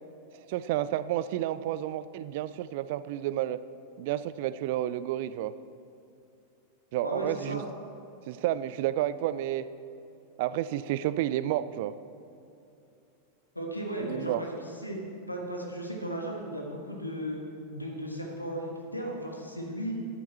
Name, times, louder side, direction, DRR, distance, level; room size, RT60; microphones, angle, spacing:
voice 1, 0.5-3.6 4.0-5.5 6.9-7.6 8.3-9.7 10.4-12.0 14.1-14.4, right 13 dB, 50° right, 15 dB, 0.3 m, -30 dB
voice 2, 7.0-7.6 13.5-15.0 15.3-17.4 17.7-19.9, right 1 dB, 85° left, 0 dB, 1.6 m, -35 dB
11.0 x 10.0 x 4.3 m, 2.7 s
figure-of-eight pair, 90°, 0 cm